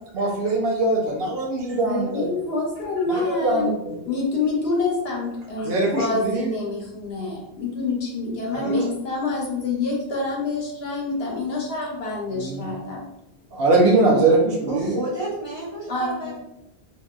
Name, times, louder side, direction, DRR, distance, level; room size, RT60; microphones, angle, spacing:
voice 1, 0.1-2.3 3.1-3.9 5.6-6.5 8.5-8.8 12.3-12.7 13.5-15.0, right 2 dB, 70° right, -2 dB, 0.9 m, -22 dB
voice 2, 1.9-3.7 4.1-13.1 15.9-16.3, left 3 dB, 75° left, -2 dB, 1.0 m, -27 dB
voice 3, 14.7-16.3, right 1 dB, 25° right, -9 dB, 1.3 m, -30 dB
2.9 x 2.6 x 2.3 m, 0.89 s
omnidirectional pair, 1.1 m